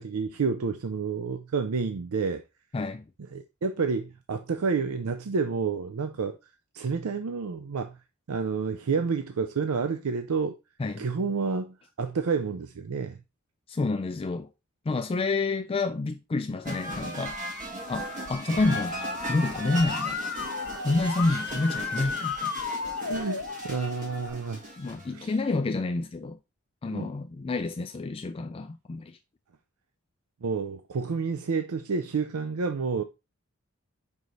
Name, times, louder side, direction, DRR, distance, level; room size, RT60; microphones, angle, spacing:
voice 1, 0.0-2.4 3.3-8.0 8.3-10.6 11.0-13.2 18.5-18.7 21.3-21.4 22.0-22.1 23.0-24.6 25.1-25.3 26.9-27.1 30.4-33.0, right 5 dB, 85° right, 0.5 m, -30 dB
voice 2, 2.7-3.0 10.8-11.0 13.7-14.5 14.9-17.4 17.9-19.0 19.3-20.2 20.8-22.5 24.8-26.4 26.8-29.2, left 3 dB, 25° left, 0.4 m, -28 dB
sound 1, 16.6-25.2, equal, 35° right, 1.9 m, -37 dB
Musical instrument, 18.7-24.3, left 5 dB, 60° left, 0.9 m, -34 dB
5.4 x 4.8 x 3.8 m
head